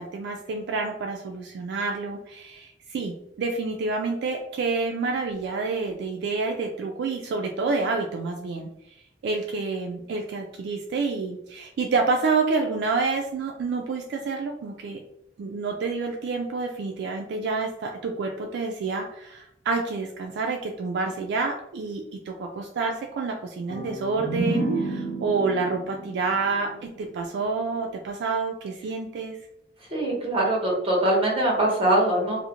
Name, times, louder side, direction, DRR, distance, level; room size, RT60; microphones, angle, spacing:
voice 1, 0.0-8.7 9.2-15.0 15.4-29.4, right 4 dB, 65° right, 2 dB, 0.3 m, -28 dB
sound 1, 23.7-27.4, right 3 dB, 50° left, 0.7 m, -31 dB
voice 2, 29.9-32.4, right 1 dB, 30° right, -2 dB, 0.8 m, -22 dB
2.4 x 2.1 x 2.9 m, 0.80 s
head